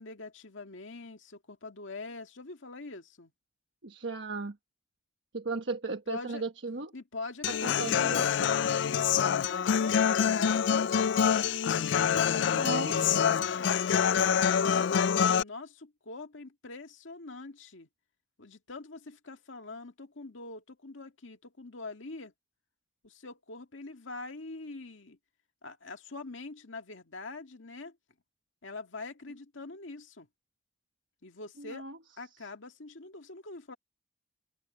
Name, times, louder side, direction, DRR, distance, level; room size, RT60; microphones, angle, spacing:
voice 1, 0.0-3.3 6.1-6.4 6.9-8.3 8.8-10.9 12.3-14.9 15.3-17.9 18.4-22.3 23.0-25.2 25.6-28.0 28.6-30.3 31.2-31.9 32.2-33.8, left 3 dB, 80° left, 1.9 m, -43 dB
voice 2, 3.8-4.6 5.3-6.9 7.6-8.5 12.4-12.9 31.6-32.0, right 3 dB, 70° right, 1.2 m, -36 dB
Human voice / Acoustic guitar, 7.4-15.4, left 7 dB, 65° left, 0.3 m, -26 dB
open air
head